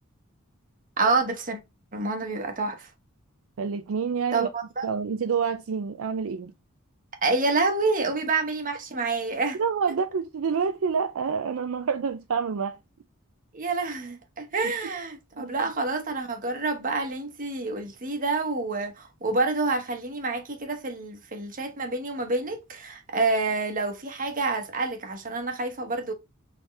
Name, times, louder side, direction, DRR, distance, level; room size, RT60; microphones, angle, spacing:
voice 1, 1.0-1.6 1.9-2.9 4.3-4.9 7.2-9.6 13.5-26.1, right 3 dB, 40° right, 1.1 m, -28 dB
voice 2, 3.6-4.5 4.8-6.5 9.6-12.8 14.6-14.7 15.4-15.6, right 6 dB, 70° right, 0.4 m, -28 dB
4.4 x 3.6 x 3.1 m
head